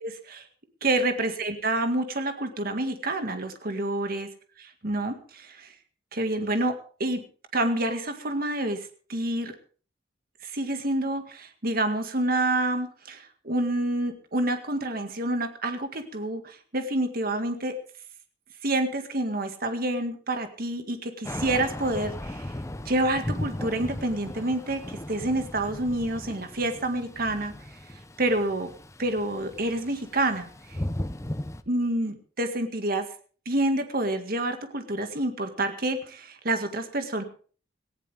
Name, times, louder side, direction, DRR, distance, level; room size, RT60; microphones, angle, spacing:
voice 1, 0.0-0.4 0.8-4.3 4.6-5.7 6.1-6.8 7.0-7.2 7.5-8.8 9.1-9.5 10.4-17.7 18.6-22.5 22.9-27.5 28.2-28.7 29.0-30.5 31.7-33.1 33.5-37.2, right 1 dB, 55° right, 7 dB, 1.9 m, -28 dB
Thunder / Rain, 21.2-31.6, left 1 dB, 15° left, 0.8 m, -37 dB
18.5 x 16.0 x 3.5 m, 0.41 s
head